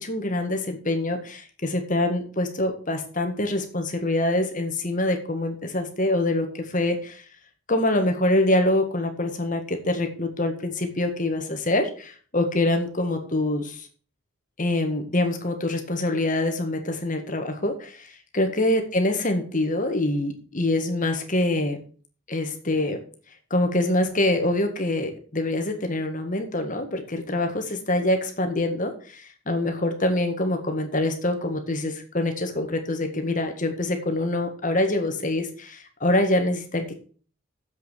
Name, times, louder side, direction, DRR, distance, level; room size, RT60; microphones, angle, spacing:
voice 1, 0.0-7.2 7.7-13.9 14.6-21.8 22.3-23.0 23.5-37.0, left 1 dB, 35° left, 5 dB, 1.7 m, -25 dB
7.6 x 6.9 x 7.3 m, 0.42 s
head